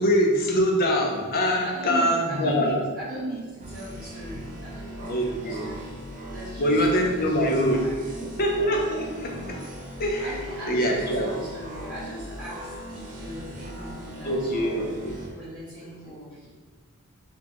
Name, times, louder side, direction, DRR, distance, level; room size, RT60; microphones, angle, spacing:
voice 1, 0.0-2.8 4.3-4.4 5.1-5.7 6.6-7.9 8.2-9.7 10.0-10.3 10.7-11.3 14.2-15.2 15.8-15.9, equal, 40° left, 1 dB, 0.5 m, -24 dB
voice 2, 1.6-6.0 6.2-8.4 10.2-14.9 15.3-16.5, right 1 dB, 5° right, -16 dB, 1.4 m, -39 dB
sound 1, 3.6-15.3, equal, 35° right, 0.5 m, -39 dB
4.4 x 2.3 x 2.9 m, 1.4 s
head